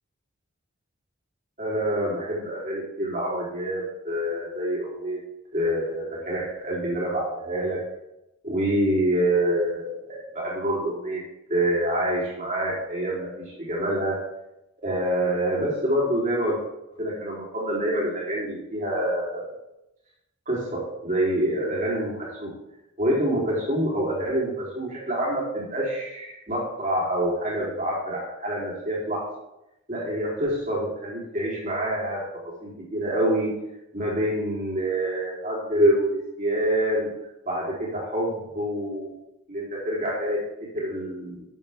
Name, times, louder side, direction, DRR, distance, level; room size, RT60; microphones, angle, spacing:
voice 1, 1.6-5.2 5.5-7.8 8.4-11.2 11.5-14.2 14.8-16.6 17.0-19.5 20.5-22.5 23.0-29.3 29.9-33.5 33.9-37.1 37.5-39.1 39.5-40.4 40.7-41.4, right 1 dB, 35° right, -4 dB, 3.9 m, -26 dB
12.5 x 8.4 x 3.7 m, 0.90 s
head